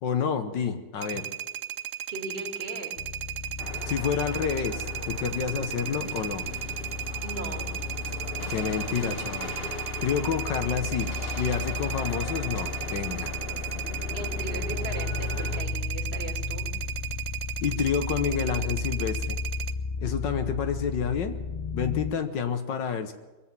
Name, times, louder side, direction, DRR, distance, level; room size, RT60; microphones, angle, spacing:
voice 1, 0.0-1.3 3.9-6.5 8.5-9.5 10.0-13.4 17.6-19.4 20.0-21.4 21.7-23.1, left 7 dB, 70° left, 8 dB, 1.6 m, -29 dB
sound 1, 1.0-19.7, right 12 dB, 80° right, 0.7 m, -36 dB
voice 2, 2.1-3.0 7.2-7.7 14.1-16.7, right 2 dB, 35° right, 3 dB, 2.0 m, -38 dB
sound 2, 3.0-22.1, left 4 dB, 85° left, 0.5 m, -34 dB
sound 3, 3.6-15.6, left 3 dB, 35° left, 1.2 m, -40 dB
22.5 x 7.8 x 7.4 m, 1.2 s
omnidirectional pair, 2.1 m